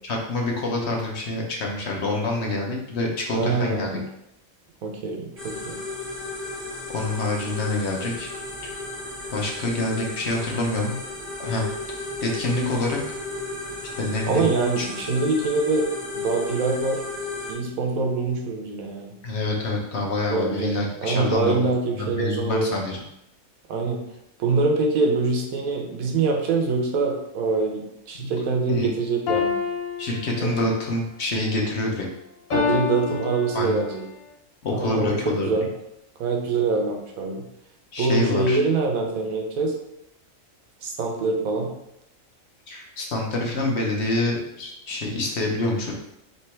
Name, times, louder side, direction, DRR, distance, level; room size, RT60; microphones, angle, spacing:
voice 1, 0.0-3.9 6.9-8.3 9.3-11.0 11.4-11.7 12.2-13.0 13.9-14.5 14.8-14.9 19.2-23.0 28.1-28.3 28.7-28.9 30.0-32.1 33.5-33.8 34.6-35.5 37.9-38.6 42.7-45.9, left 2 dB, 55° left, -1 dB, 1.0 m, -26 dB
voice 2, 3.3-4.0 4.8-5.8 14.3-15.9 16.1-17.0 17.5-19.2 20.3-20.8 21.0-22.7 23.7-24.0 24.4-29.6 30.4-30.6 32.5-34.0 34.7-35.7 36.2-37.5 38.0-39.8 40.8-41.7, right 3 dB, 85° right, 3 dB, 1.2 m, -24 dB
sound 1, 5.4-17.5, left 2 dB, ahead, 0.9 m, -34 dB
sound 2, 29.3-30.8 32.5-34.0, left 6 dB, 75° left, 1.2 m, -28 dB
3.4 x 3.0 x 4.3 m, 0.81 s
omnidirectional pair, 1.4 m